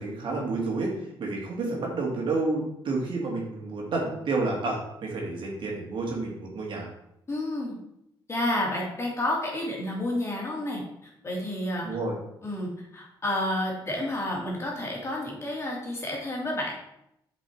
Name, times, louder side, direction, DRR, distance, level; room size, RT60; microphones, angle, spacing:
voice 1, 0.0-6.9 11.8-12.2, right 3 dB, 65° right, -1 dB, 2.4 m, -30 dB
voice 2, 7.3-7.8 8.3-10.8 11.2-11.9 12.4-16.7, left 1 dB, 30° left, -2 dB, 2.8 m, -30 dB
7.2 x 5.4 x 4.6 m, 0.80 s
cardioid pair, 80°, 9 cm